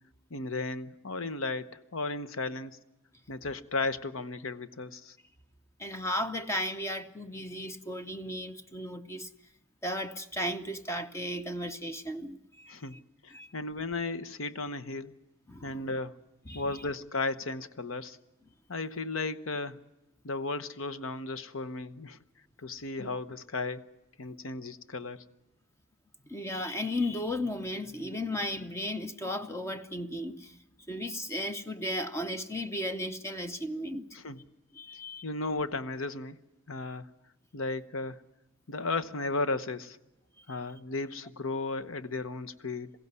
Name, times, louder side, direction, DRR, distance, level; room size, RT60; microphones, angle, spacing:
voice 1, 0.3-2.8 3.3-5.2 12.7-15.1 15.6-16.2 16.5-18.2 18.7-19.8 20.2-22.2 22.6-23.9 24.2-25.2 34.1-34.4 35.2-36.4 36.7-37.1 37.5-38.2 38.7-40.0 40.5-42.9, left 3 dB, 75° left, 1.0 m, -35 dB
voice 2, 5.8-9.3 9.8-12.7 13.3-13.5 15.5-15.8 16.5-16.8 23.0-23.1 26.3-30.6 30.9-34.1 34.7-35.2, left 1 dB, 15° left, 0.7 m, -35 dB
22.0 x 16.0 x 9.6 m
head